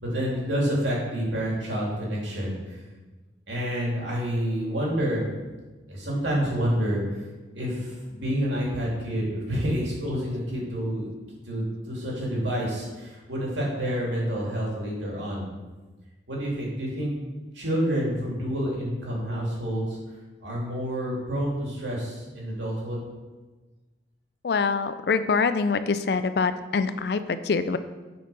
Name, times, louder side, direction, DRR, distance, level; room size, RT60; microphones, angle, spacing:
voice 1, 0.0-2.8 3.5-5.2 5.9-7.0 7.5-11.1 11.5-15.5 16.3-17.1 17.5-20.0 20.4-23.0, equal, 85° right, -4 dB, 2.5 m, -28 dB
voice 2, 24.4-27.8, left 4 dB, 60° left, 12 dB, 0.4 m, -25 dB
7.5 x 4.5 x 5.4 m, 1.2 s
head